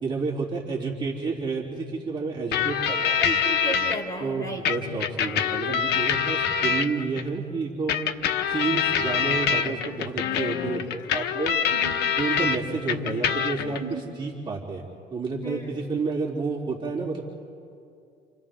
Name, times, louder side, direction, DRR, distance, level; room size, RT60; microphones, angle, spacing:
voice 1, 0.0-3.2 4.2-7.9 8.5-11.6 12.2-17.2, right 4 dB, 30° right, -5 dB, 3.6 m, -30 dB
sound 1, 2.5-4.0 4.7-7.2 7.9-12.6 12.9-13.8, left 7 dB, 80° left, 1.1 m, -25 dB
voice 2, 3.2-4.6 11.7-11.9 13.8-14.0 15.4-15.6, right 1 dB, 20° left, -1 dB, 5.1 m, -33 dB
29.5 x 29.0 x 3.8 m, 2.5 s
cardioid pair, 110°, 17 cm